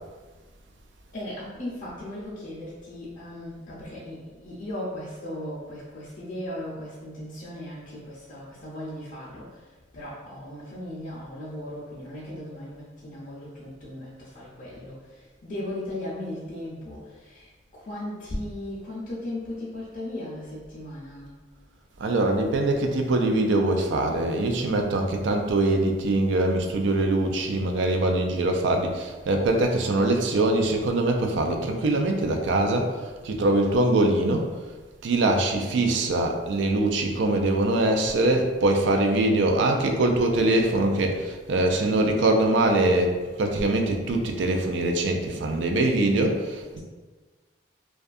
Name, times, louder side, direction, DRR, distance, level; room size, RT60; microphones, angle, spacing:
voice 1, 1.1-21.4 46.7-46.8, left 1 dB, 40° left, -8 dB, 0.4 m, -37 dB
voice 2, 22.0-34.5 35.0-46.8, right 2 dB, 70° right, 3 dB, 0.3 m, -23 dB
2.6 x 2.3 x 2.3 m, 1.3 s
head